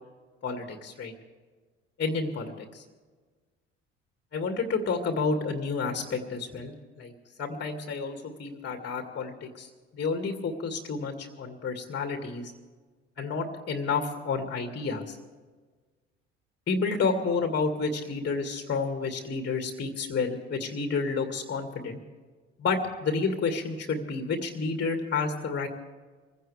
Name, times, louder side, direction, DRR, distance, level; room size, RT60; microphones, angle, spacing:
voice 1, 0.4-1.1 2.0-2.8 4.3-7.1 7.4-9.7 9.9-12.5 13.2-15.2 16.7-22.0 22.6-25.7, left 4 dB, 30° left, 5 dB, 2.1 m, -30 dB
25.0 x 16.0 x 3.4 m, 1.4 s
figure-of-eight pair, 55°, 36 cm